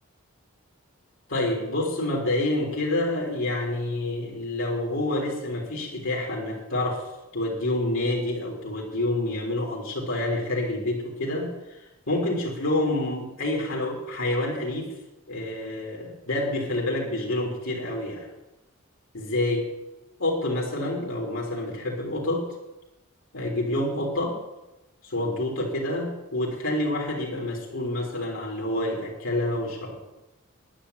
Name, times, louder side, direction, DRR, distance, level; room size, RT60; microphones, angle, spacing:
voice 1, 1.3-7.1 7.3-11.8 12.1-14.9 15.3-18.3 19.1-19.7 20.2-22.5 23.3-24.4 25.0-29.9, left 1 dB, 65° left, -2 dB, 3.8 m, -28 dB
10.0 x 9.8 x 9.9 m, 0.98 s
head